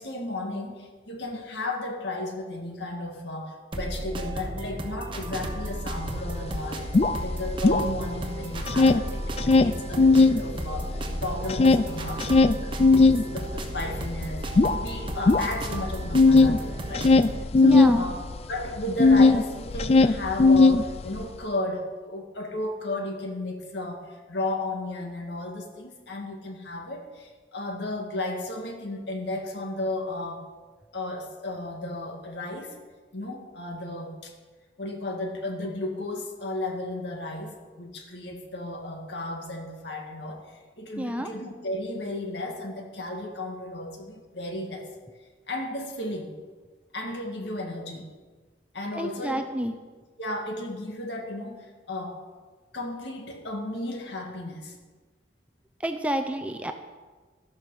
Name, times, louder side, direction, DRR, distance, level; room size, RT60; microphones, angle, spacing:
voice 1, 0.0-6.9 7.2-17.1 17.6-18.2 18.5-30.5 30.9-32.8 33.1-34.3 34.8-44.9 45.5-46.3 46.9-48.1 48.7-49.4 50.2-52.2 52.7-54.7, left 1 dB, 70° left, 3 dB, 1.9 m, -34 dB
sound 1, 3.7-17.4, right 1 dB, 25° right, 1.0 m, -34 dB
sound 2, 5.9-6.0 6.3-8.3 8.5-10.4 10.8-19.4 19.7-21.2, left 3 dB, 35° left, 0.4 m, -19 dB
voice 2, 17.6-18.1 41.0-41.3 48.9-49.7 55.8-56.7, right 1 dB, 5° right, 6 dB, 0.6 m, -28 dB
12.5 x 11.5 x 4.8 m, 1.4 s
head